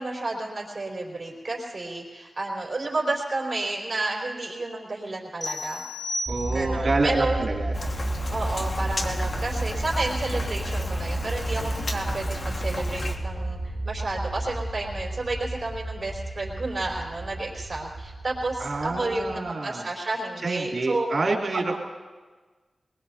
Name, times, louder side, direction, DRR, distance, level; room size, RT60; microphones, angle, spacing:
voice 1, 0.0-5.8 6.5-7.5 8.3-21.1 21.5-21.6, right 2 dB, 50° right, -3 dB, 4.3 m, -31 dB
sound 1, 5.4-6.9, left 1 dB, 40° left, 6.9 m, -33 dB
sound 2, 6.3-19.4, right 1 dB, 5° right, 3.4 m, -32 dB
voice 2, 6.3-7.7 18.6-19.9 20.4-21.8, right 3 dB, 65° right, 0 dB, 2.7 m, -27 dB
Rain, 7.7-13.1, left 2 dB, 65° left, 1.7 m, -34 dB
22.0 x 21.5 x 2.8 m, 1.4 s
cardioid pair, 50°, 0 cm